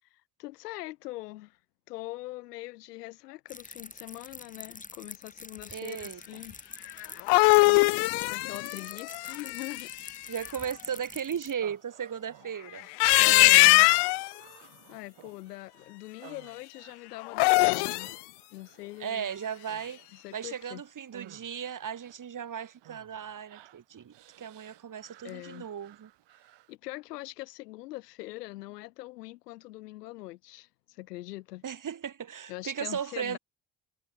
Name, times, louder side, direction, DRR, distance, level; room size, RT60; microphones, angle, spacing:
voice 1, 0.1-1.6 1.9-6.5 7.6-9.9 13.1-13.9 14.9-18.2 18.5-19.3 20.1-20.8 25.2-25.7 26.7-31.6 32.5-33.4, left 18 dB, 80° left, 1.6 m, -42 dB
sound 1, 3.5-11.5, left 3 dB, 15° left, 2.5 m, -46 dB
voice 2, 5.7-6.2 7.7-7.8 10.3-12.9 13.3-13.7 19.0-20.0 20.3-26.1 31.6-33.4, right 8 dB, 40° right, 2.5 m, -36 dB
sound 2, 7.0-10.1 12.8-14.3 17.2-18.1, left 27 dB, 60° left, 0.5 m, -21 dB
Human voice, 11.6-26.8, right 15 dB, 60° right, 3.6 m, -57 dB
hypercardioid pair, 50°, 47 cm